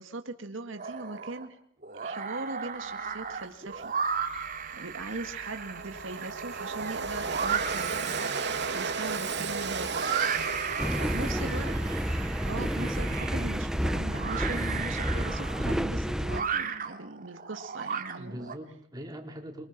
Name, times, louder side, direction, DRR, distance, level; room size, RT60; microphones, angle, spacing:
voice 1, 0.0-1.6 1.9-3.9 4.2-10.1 11.0-11.8 12.5-18.5, right 2 dB, 80° right, 7 dB, 2.1 m, -40 dB
sound 1, 0.8-1.5 1.8-18.5, right 6 dB, 45° right, 2.9 m, -35 dB
Train, 3.2-3.3 3.7-14.1, right 4 dB, 65° right, 3.1 m, -36 dB
voice 2, 10.7-11.6 18.1-19.7, equal, 20° right, 2 dB, 5.0 m, -43 dB
sound 2, 10.8-16.4, equal, 5° right, 1.0 m, -30 dB
28.5 x 24.5 x 6.1 m, 0.63 s
head